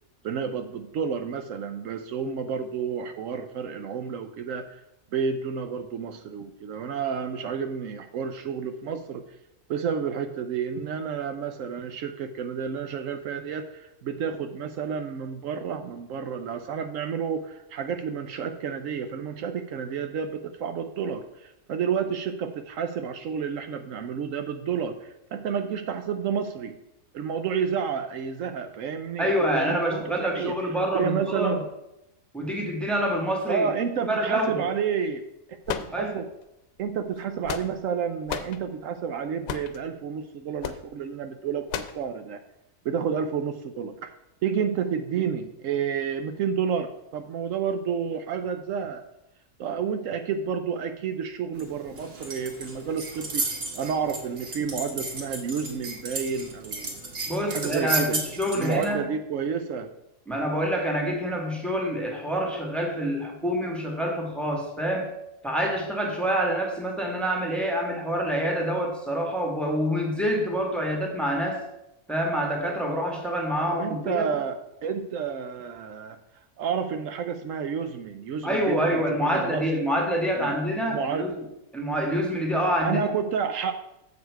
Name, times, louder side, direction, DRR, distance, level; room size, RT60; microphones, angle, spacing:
voice 1, 0.2-4.8 5.1-9.2 9.7-26.7 27.1-30.6 30.9-31.6 33.5-36.3 36.8-42.4 42.8-44.1 44.4-49.0 49.6-53.5 53.7-57.1 57.5-58.2 58.5-59.9 73.7-76.2 76.6-79.6 80.4-80.6 80.9-81.3 82.8-83.7, right 7 dB, 75° right, 7 dB, 0.9 m, -30 dB
voice 2, 29.2-31.6 32.3-33.7 34.1-34.7 35.9-36.1 57.3-59.1 60.3-65.1 65.4-71.6 72.1-74.4 78.4-81.4 81.7-83.1, equal, ahead, -1 dB, 1.4 m, -27 dB
sound 1, 35.6-36.4 37.2-37.9 38.3-38.6 39.5-39.8 40.6-40.8 41.7-42.0, left 8 dB, 90° left, 1.1 m, -33 dB
sound 2, 51.6-58.9, right 3 dB, 45° right, 1.4 m, -34 dB
7.2 x 6.6 x 4.5 m, 0.86 s
omnidirectional pair, 1.4 m